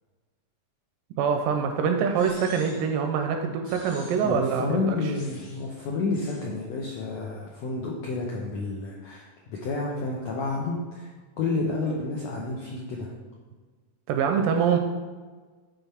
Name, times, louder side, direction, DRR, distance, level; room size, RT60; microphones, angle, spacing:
voice 1, 1.2-5.0 14.1-14.8, right 6 dB, 80° right, 4 dB, 2.0 m, -24 dB
sound 1, 2.2-3.0 3.6-4.4 5.1-5.7 6.1-6.5, left 2 dB, 55° left, 2.2 m, -47 dB
voice 2, 4.2-11.1 11.4-13.1, left 3 dB, 85° left, -3 dB, 1.5 m, -30 dB
9.1 x 3.6 x 4.2 m, 1.4 s
omnidirectional pair, 4.1 m